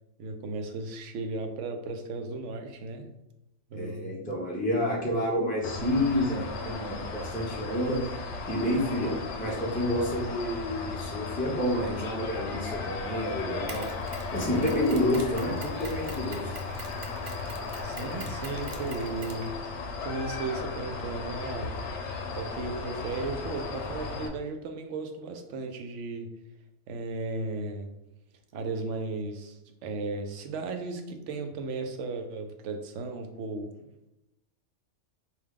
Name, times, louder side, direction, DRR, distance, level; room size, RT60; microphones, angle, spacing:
voice 1, 0.2-3.1 3.7-4.2 17.8-19.5 20.0-21.7 22.3-26.3 26.9-27.9 28.5-33.7, right 3 dB, 75° right, 6 dB, 0.9 m, -35 dB
voice 2, 3.7-8.0 8.5-13.9 14.3-16.5, left 1 dB, 10° left, -3 dB, 0.4 m, -29 dB
sound 1, 5.6-24.3, left 4 dB, 70° left, 0.8 m, -36 dB
Mechanisms, 13.7-20.0, right 4 dB, 55° right, 0.5 m, -45 dB
4.5 x 2.3 x 3.6 m, 0.89 s
omnidirectional pair, 1.3 m